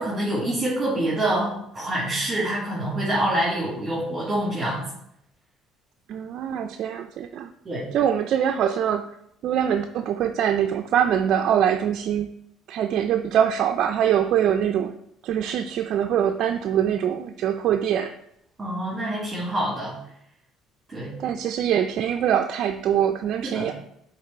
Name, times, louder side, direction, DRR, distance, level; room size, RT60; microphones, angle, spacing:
voice 1, 0.0-4.8 7.6-7.8 18.6-20.0 20.9-21.1 23.4-23.7, right 1 dB, 20° right, -8 dB, 2.5 m, -26 dB
voice 2, 6.1-7.5 7.9-9.1 9.4-12.3 12.7-14.9 15.2-18.1 21.2-23.7, right 9 dB, 60° right, 6 dB, 0.4 m, -23 dB
7.3 x 3.7 x 4.4 m, 0.75 s
cardioid pair, 115°, 0 cm